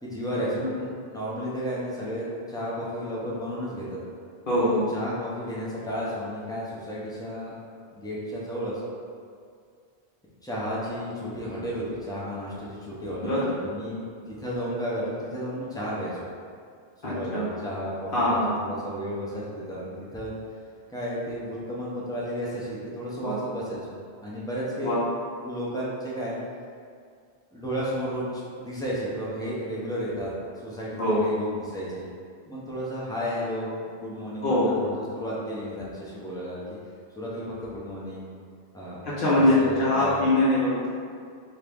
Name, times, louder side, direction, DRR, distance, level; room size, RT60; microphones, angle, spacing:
voice 1, 0.0-4.0 4.5-7.5 7.9-8.8 10.4-16.1 17.0-20.3 20.9-25.0 25.4-26.4 27.5-30.3 30.6-32.1 32.5-36.6 37.1-38.3 38.7-39.0 39.4-40.2, equal, 5° left, -7 dB, 0.4 m, -33 dB
voice 2, 4.5-4.8 13.2-13.4 17.0-17.5 18.1-18.5 23.2-23.4 24.8-25.0 31.0-31.3 34.4-34.7 39.0-40.9, left 1 dB, 60° left, -9 dB, 0.8 m, -23 dB
2.9 x 2.5 x 3.4 m, 2.2 s
omnidirectional pair, 1.1 m